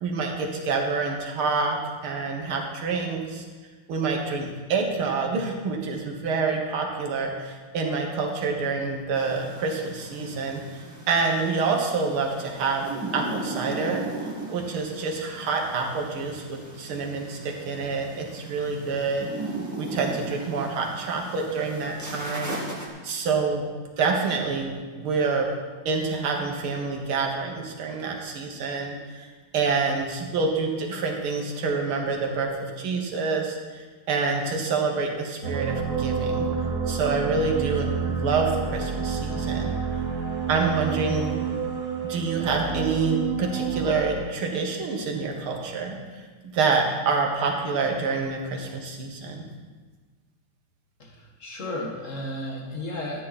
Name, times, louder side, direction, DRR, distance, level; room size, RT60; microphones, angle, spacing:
voice 1, 0.0-1.8 2.0-3.4 3.9-19.3 19.8-22.5 23.0-23.6 24.0-25.5 25.9-29.3 29.5-32.5 32.8-36.5 36.9-39.7 40.5-41.3 42.0-46.0 46.4-49.4, right 4 dB, 85° right, 1 dB, 2.3 m, -27 dB
sound 1, 9.1-22.9, right 2 dB, 10° right, 1.3 m, -37 dB
sound 2, 35.4-44.0, right 6 dB, 45° right, 1.9 m, -29 dB
voice 2, 51.0-53.2, left 1 dB, 40° left, -1 dB, 2.0 m, -33 dB
13.0 x 9.4 x 4.2 m, 1.4 s
omnidirectional pair, 2.3 m